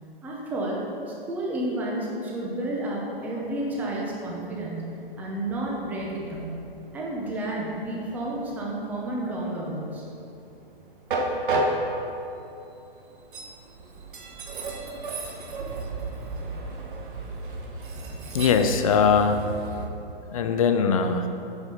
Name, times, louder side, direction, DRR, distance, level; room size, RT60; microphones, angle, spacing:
voice 1, 0.2-0.8 1.1-4.9 5.2-6.6 6.9-10.0, right 1 dB, 5° right, -3 dB, 0.7 m, -31 dB
Train, 3.1-19.9, right 2 dB, 60° right, 1.4 m, -34 dB
voice 2, 18.3-19.5 20.3-21.3, left 6 dB, 35° left, 7 dB, 0.6 m, -21 dB
10.0 x 4.8 x 5.4 m, 2.7 s
hypercardioid pair, 165°, 29 cm